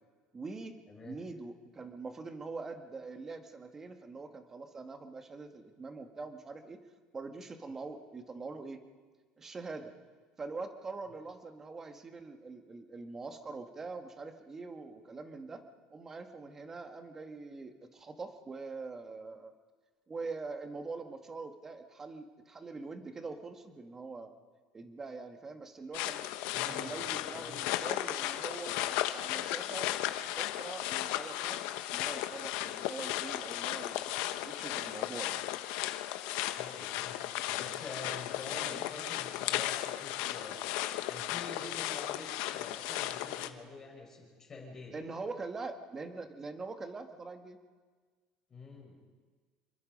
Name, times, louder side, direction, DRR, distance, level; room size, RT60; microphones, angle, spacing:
voice 1, 0.3-0.8 1.0-6.8 7.1-8.8 9.4-9.9 10.4-15.6 15.9-19.5 20.1-24.3 24.7-26.2 26.7-29.9 30.4-34.1 34.4-35.4 38.6-38.8 44.9-47.6, right 3 dB, 20° right, 6 dB, 1.6 m, -43 dB
voice 2, 0.9-1.2 26.5-27.0 27.3-27.6 36.6-37.2 37.4-40.6 41.1-44.9 48.5-49.0, left 2 dB, 20° left, 0 dB, 5.8 m, -47 dB
sound 1, 25.9-43.5, left 14 dB, 75° left, 1.2 m, -35 dB
27.0 x 23.0 x 5.4 m, 1.5 s
cardioid pair, 155°, 2 cm